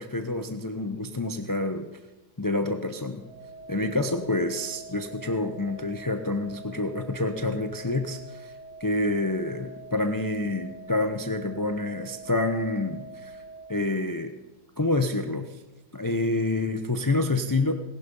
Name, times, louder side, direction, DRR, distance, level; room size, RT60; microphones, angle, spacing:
voice 1, 0.0-1.9 2.4-3.2 3.7-8.5 8.8-13.4 13.7-14.3 14.8-15.6 15.9-17.7, left 2 dB, 20° left, 7 dB, 0.5 m, -28 dB
sound 1, 3.2-13.6, right 2 dB, 60° right, 7.3 m, -45 dB
18.0 x 12.0 x 5.5 m, 1.1 s
omnidirectional pair, 1.7 m